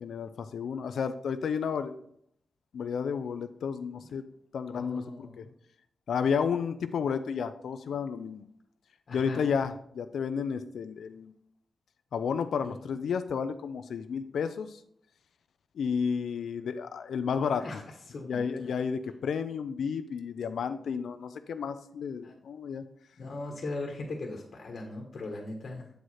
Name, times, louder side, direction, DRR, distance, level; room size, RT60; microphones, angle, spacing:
voice 1, 0.0-2.0 2.7-4.3 4.5-5.4 6.1-8.4 9.1-11.3 12.1-14.8 15.8-17.6 18.3-22.8, left 6 dB, 85° left, 9 dB, 0.4 m, -32 dB
voice 2, 4.7-5.5 9.1-9.4 12.6-12.7 17.6-18.8 22.2-22.3 23.2-25.9, left 2 dB, 55° left, 1 dB, 1.2 m, -39 dB
7.8 x 4.8 x 4.2 m, 0.68 s
wide cardioid pair, 125°, 0 cm